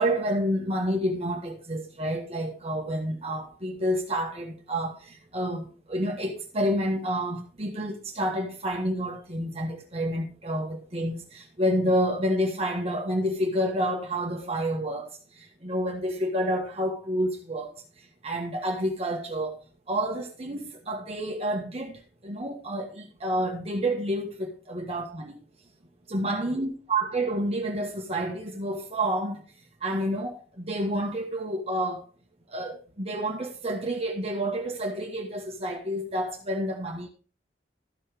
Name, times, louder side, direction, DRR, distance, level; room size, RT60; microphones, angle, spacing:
voice 1, 0.0-17.7 18.2-19.6 19.9-25.4 26.1-29.4 29.8-32.1 32.5-37.1, equal, 35° right, 1.4 m, -29 dB
13.5 x 5.5 x 4.9 m
head